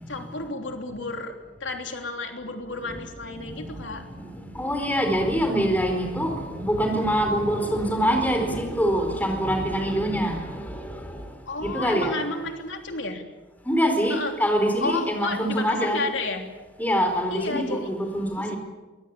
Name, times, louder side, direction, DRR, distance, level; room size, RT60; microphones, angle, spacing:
voice 1, 0.1-4.0 11.5-13.2 14.1-14.3 14.8-16.4 17.3-17.9 18.4-18.5, left 3 dB, 80° left, 4 dB, 3.2 m, -32 dB
voice 2, 3.3-11.2 11.6-12.1 13.6-16.0 16.8-18.6, equal, 10° left, 4 dB, 4.6 m, -25 dB
24.0 x 21.5 x 8.6 m, 1.2 s
head